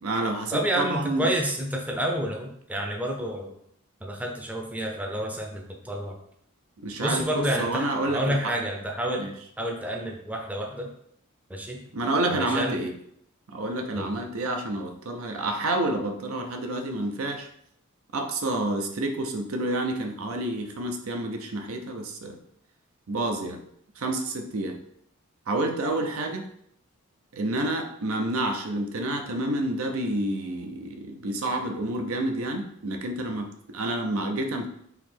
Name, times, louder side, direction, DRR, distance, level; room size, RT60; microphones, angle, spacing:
voice 1, 0.0-1.3 6.8-8.5 9.2-9.3 11.9-12.9 13.5-17.5 18.1-22.4 23.1-23.6 24.0-24.8 25.5-26.4 27.3-34.7, right 1 dB, 80° right, 4 dB, 0.6 m, -29 dB
voice 2, 0.5-3.5 4.0-6.2 7.0-9.3 9.6-10.9 11.5-11.8 12.3-12.8 13.9-14.1, right 1 dB, 5° right, 1 dB, 0.5 m, -29 dB
4.0 x 2.9 x 4.3 m, 0.72 s
head